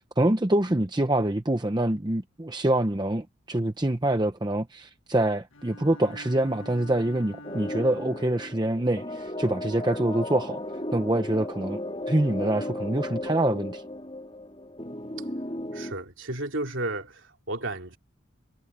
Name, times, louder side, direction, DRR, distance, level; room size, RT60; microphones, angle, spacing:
voice 1, 0.2-10.6 10.9-11.8 12.1-13.8, right 1 dB, 20° right, 0.7 m, -25 dB
Bowed string instrument, 5.5-8.6, left 1 dB, 80° left, 1.8 m, -45 dB
sound 1, 7.4-15.9, left 1 dB, 25° left, 3.8 m, -35 dB
voice 2, 15.7-18.0, right 2 dB, 75° right, 3.0 m, -33 dB
head